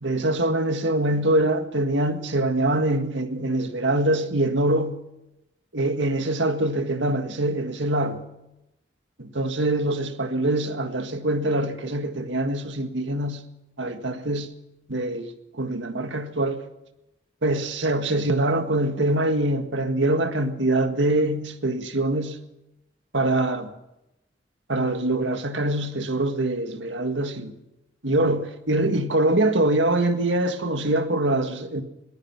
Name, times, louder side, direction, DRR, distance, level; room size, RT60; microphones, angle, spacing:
voice 1, 0.0-5.0 5.7-8.2 9.2-13.4 13.8-14.5 14.9-15.3 15.6-16.6 17.4-22.4 23.1-23.7 24.7-27.5 28.0-31.8, right 1 dB, 85° right, 1.8 m, -24 dB
22.0 x 19.5 x 6.0 m
head